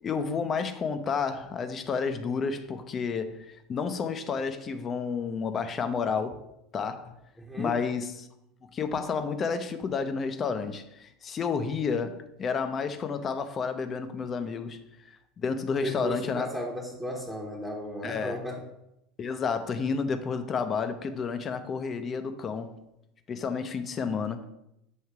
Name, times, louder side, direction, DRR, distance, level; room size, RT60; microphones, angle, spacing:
voice 1, 0.0-6.4 6.7-7.2 7.6-8.3 8.7-14.8 15.4-16.5 18.0-18.3 19.2-22.8 23.3-24.5, left 5 dB, 35° left, 0.7 m, -30 dB
voice 2, 7.4-7.8 15.8-18.6, equal, 10° right, 1.1 m, -35 dB
7.4 x 2.7 x 4.6 m
hypercardioid pair, 75°, 0 cm